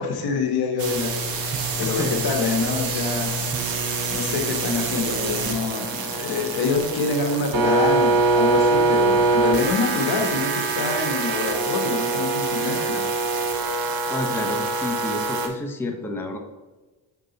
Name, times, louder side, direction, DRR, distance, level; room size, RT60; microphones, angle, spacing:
voice 1, 0.0-3.4 4.1-13.1, left 4 dB, 65° left, 3 dB, 1.3 m, -26 dB
sound 1, 0.8-15.5, right 3 dB, 60° right, 1.1 m, -24 dB
voice 2, 1.8-2.2 14.1-16.4, left 2 dB, 5° left, 2 dB, 0.7 m, -30 dB
6.7 x 3.6 x 4.0 m, 1.2 s
cardioid pair, 100°, 40 cm